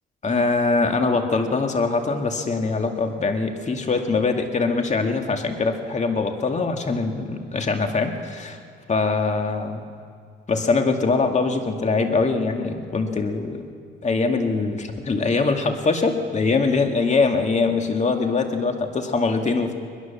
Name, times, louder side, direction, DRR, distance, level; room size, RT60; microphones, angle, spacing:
voice 1, 0.2-8.6 8.9-9.8 10.5-13.7 14.0-19.8, left 4 dB, 35° left, 5 dB, 2.2 m, -23 dB
22.5 x 20.5 x 7.2 m, 2.2 s
cardioid pair, 90°, 20 cm